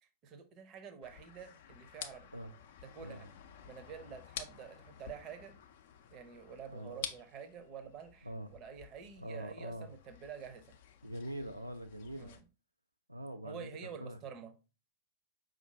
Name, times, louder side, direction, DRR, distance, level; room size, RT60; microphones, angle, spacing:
voice 1, 0.0-2.3 2.8-3.3 3.6-5.5 6.1-10.8 12.1-12.4 13.4-14.5, right 7 dB, 35° right, 0.6 m, -49 dB
sound 1, 1.0-12.4, left 8 dB, 55° left, 0.4 m, -51 dB
voice 2, 9.2-9.9 11.0-12.3 13.1-13.7 14.0-14.2, equal, 85° right, 0.3 m, -43 dB
5.1 x 2.5 x 3.2 m
figure-of-eight pair, 90°, 0 cm